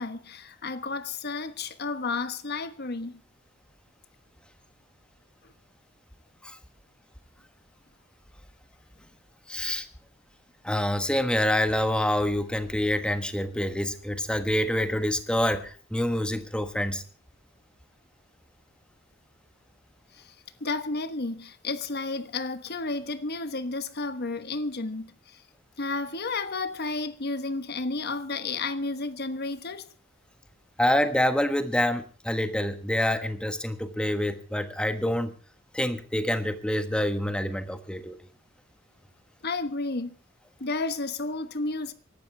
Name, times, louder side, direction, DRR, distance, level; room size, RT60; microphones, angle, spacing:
voice 1, 0.0-3.2 5.4-5.5 20.1-20.3 20.6-25.4 25.8-29.9 39.4-40.2 40.6-41.9, left 3 dB, 55° left, 1.3 m, -32 dB
voice 2, 9.5-9.9 10.6-17.0 30.8-35.3 35.7-38.2, left 1 dB, 5° left, 1.4 m, -27 dB
24.5 x 12.0 x 3.4 m
head